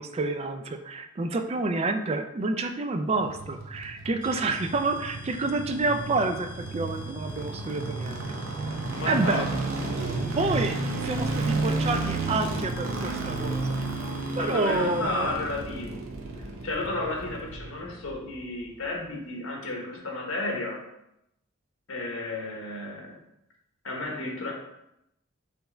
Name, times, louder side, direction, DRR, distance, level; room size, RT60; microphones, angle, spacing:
voice 1, 0.0-8.3 9.1-9.5 10.3-13.8 14.4-15.3, right 3 dB, 30° right, 7 dB, 0.3 m, -29 dB
sound 1, 3.1-18.3 18.6-18.7, right 3 dB, 80° right, 0.6 m, -32 dB
sound 2, 4.2-15.6, left 5 dB, 25° left, 1.0 m, -50 dB
voice 2, 8.9-9.5 14.4-16.1 16.4-20.8 21.9-23.2 23.8-24.5, left 2 dB, 80° left, 0 dB, 1.0 m, -32 dB
4.3 x 3.3 x 3.3 m, 0.84 s
head